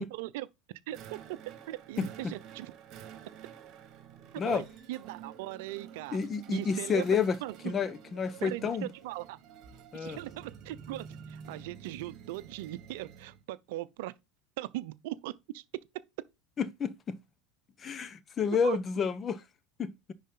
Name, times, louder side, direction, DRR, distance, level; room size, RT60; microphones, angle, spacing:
voice 1, 0.1-0.5 0.9-1.2 1.7-2.7 4.5-6.2 6.5-7.0 7.4-7.5 8.4-9.4 9.9-14.1 14.6-15.6 18.5-18.8, right 16 dB, 75° right, 0.5 m, -39 dB
sound 1, 0.9-13.4, right 8 dB, 50° right, 1.6 m, -50 dB
voice 2, 2.0-2.3 4.4-4.6 6.1-7.4 7.6-8.9 9.9-10.2 16.6-17.2 17.8-19.4 19.8-20.1, left 6 dB, 30° left, 0.9 m, -30 dB
10.5 x 4.1 x 3.8 m
hypercardioid pair, 100°, 0 cm